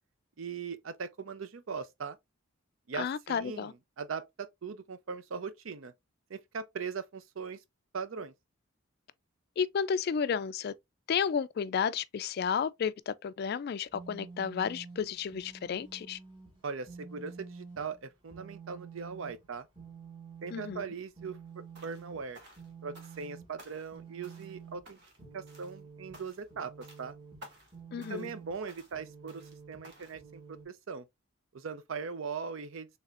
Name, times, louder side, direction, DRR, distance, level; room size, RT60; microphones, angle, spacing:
voice 1, 0.4-2.2 2.9-5.9 6.3-7.6 7.9-8.3 16.6-19.7 20.4-22.4 22.8-25.0 25.3-27.2 28.1-31.1 31.5-32.9, right 5 dB, 75° right, 0.5 m, -40 dB
voice 2, 3.0-3.7 9.6-10.7 11.1-16.2 20.5-20.8 27.9-28.3, left 7 dB, 50° left, 0.3 m, -32 dB
sound 1, 13.9-30.7, right 5 dB, 25° right, 1.7 m, -50 dB
sound 2, 21.7-22.1 22.3-23.3 23.6-24.0 24.2-24.6 24.9-25.2 25.5-25.8 26.1-26.5 26.8-27.1 27.4-27.7 28.0-28.4 28.7-29.0 29.3-29.6 29.8-30.2, equal, 55° right, 1.4 m, -54 dB
4.0 x 3.4 x 2.4 m
head